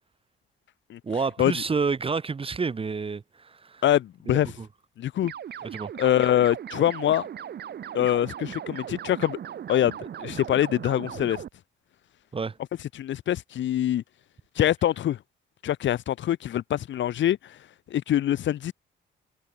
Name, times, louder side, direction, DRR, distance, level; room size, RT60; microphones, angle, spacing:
voice 1, 1.0-3.8 4.3-4.7 5.6-5.9 12.3-12.6, right 4 dB, 25° right, 1.0 m, -29 dB
voice 2, 3.8-4.5 5.0-5.3 6.0-7.3 7.9-9.4 9.7-11.4 12.9-14.0 14.6-15.2 15.6-17.6 17.9-18.7, left 11 dB, 70° left, 1.6 m, -24 dB
sound 1, 5.2-11.5, right 9 dB, 55° right, 1.3 m, -38 dB
cardioid pair, 90°, 20 cm